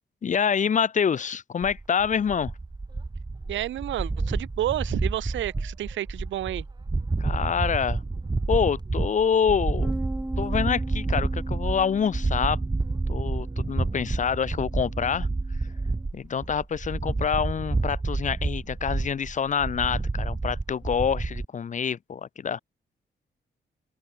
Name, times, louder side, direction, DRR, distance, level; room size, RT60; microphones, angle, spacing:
voice 1, 0.2-2.5 7.2-8.0 8.5-9.9 10.4-12.6 13.1-15.3 16.1-22.6, left 7 dB, 40° left, 0.5 m, -26 dB
sound 1, 1.6-21.4, right 3 dB, 20° right, 1.5 m, -29 dB
voice 2, 3.5-6.7, right 13 dB, 85° right, 0.9 m, -30 dB
Bass guitar, 9.8-16.1, right 1 dB, 5° right, 1.3 m, -40 dB
open air
cardioid pair, 65°, 19 cm